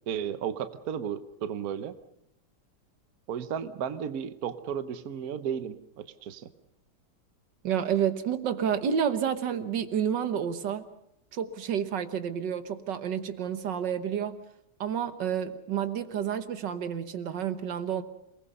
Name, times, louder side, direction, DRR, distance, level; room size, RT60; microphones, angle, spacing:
voice 1, 0.1-1.9 3.3-6.5, right 8 dB, 60° right, 11 dB, 1.4 m, -34 dB
voice 2, 7.6-10.9 11.3-14.4 14.8-18.0, right 8 dB, 85° right, 10 dB, 1.9 m, -30 dB
28.0 x 19.5 x 5.5 m, 0.78 s
omnidirectional pair, 1.9 m